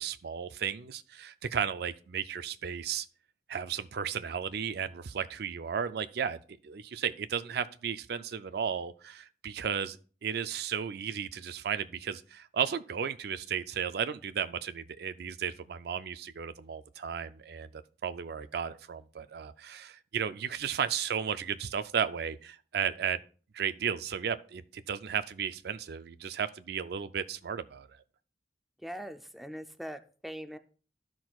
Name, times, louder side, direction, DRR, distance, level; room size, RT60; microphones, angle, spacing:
voice 1, 0.0-3.1 3.5-10.0 10.2-23.2 23.5-27.9, right 7 dB, 60° right, 0.4 m, -34 dB
voice 2, 28.8-30.6, equal, ahead, 0.5 m, -41 dB
13.0 x 6.0 x 2.3 m
head